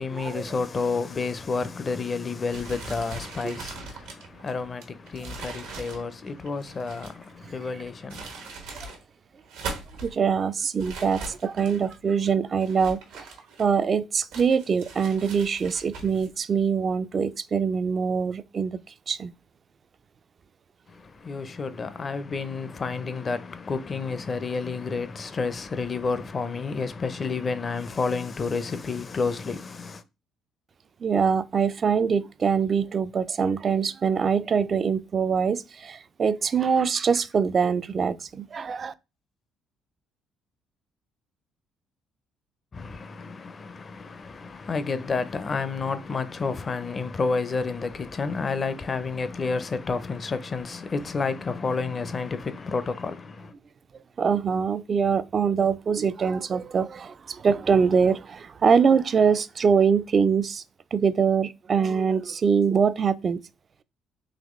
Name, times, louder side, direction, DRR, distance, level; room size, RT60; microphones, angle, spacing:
voice 1, 0.0-8.6 20.9-30.0 42.7-53.5, left 4 dB, 40° left, 0.5 m, -30 dB
sound 1, 2.5-7.3 7.9-9.0 9.4-10.1 10.8-12.0 12.6-13.9 14.3-16.3, right 3 dB, 90° right, 1.1 m, -40 dB
voice 2, 10.0-13.2 13.6-18.8 19.1-19.3 31.0-38.9 54.2-60.6 60.9-63.4, right 6 dB, 45° right, 0.3 m, -23 dB
4.0 x 2.9 x 3.0 m
supercardioid pair, 70°, 0 cm